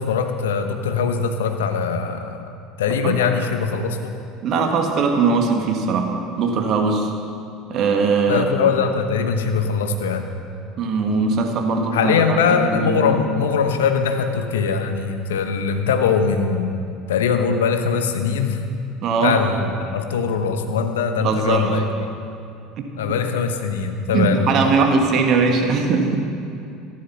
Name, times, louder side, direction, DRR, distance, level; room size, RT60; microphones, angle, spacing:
voice 1, 0.0-2.5 2.8-4.1 8.3-10.3 11.9-16.7 17.1-18.6 19.2-21.8 23.0-24.8, left 6 dB, 75° left, 7 dB, 1.0 m, -21 dB
voice 2, 4.4-6.1 6.4-7.1 7.7-8.5 10.8-13.2 19.0-19.4 21.2-21.7 22.8-22.9 24.1-26.2, right 4 dB, 50° right, 3 dB, 1.8 m, -20 dB
14.0 x 11.5 x 5.8 m, 2.5 s
hypercardioid pair, 70°, 0 cm